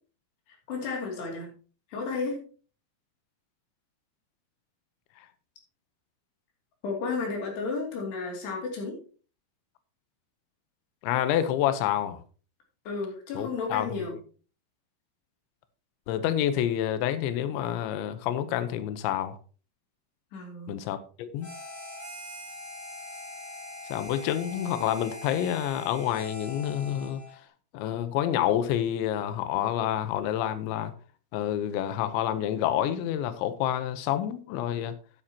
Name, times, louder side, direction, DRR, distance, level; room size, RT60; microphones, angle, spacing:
voice 1, 0.7-1.5 1.9-2.4 6.8-9.0 12.9-14.1 20.3-20.8, left 4 dB, 65° left, 4.7 m, -32 dB
voice 2, 11.0-12.2 13.3-14.1 16.1-19.4 20.7-21.5 23.9-27.2 27.7-30.9 31.3-34.9, left 11 dB, 80° left, 3.2 m, -28 dB
Harmonica, 21.4-27.4, left 2 dB, 5° left, 2.7 m, -42 dB
11.5 x 11.0 x 2.9 m
omnidirectional pair, 5.4 m